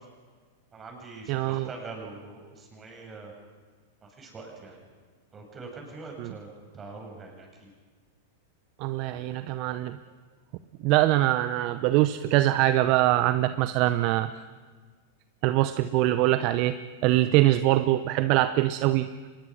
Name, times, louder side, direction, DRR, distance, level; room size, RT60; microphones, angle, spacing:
voice 1, 0.7-3.3 4.0-4.8 5.3-6.5 6.7-7.7, right 3 dB, 25° right, 1 dB, 6.9 m, -43 dB
voice 2, 1.3-1.7 6.2-6.3 8.8-10.0 10.8-14.3 15.4-16.8 17.0-19.1, right 15 dB, 50° right, 12 dB, 0.8 m, -23 dB
25.0 x 20.5 x 6.1 m, 1.5 s
hypercardioid pair, 100°, 0 cm